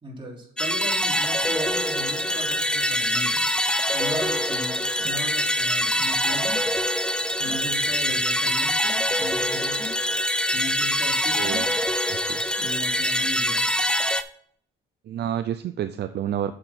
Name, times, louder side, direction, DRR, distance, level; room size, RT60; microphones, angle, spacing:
voice 1, 0.0-3.5 3.9-6.6 7.4-9.9 10.5-11.6 12.6-13.7, equal, 25° right, -2 dB, 3.4 m, -36 dB
sound 1, 0.6-14.2, left 1 dB, 5° left, 0.5 m, -24 dB
voice 2, 11.3-11.7 12.1-12.4 15.1-16.5, right 10 dB, 55° right, 10 dB, 0.5 m, -29 dB
7.5 x 6.6 x 4.4 m, 0.63 s
cardioid pair, 90°, 20 cm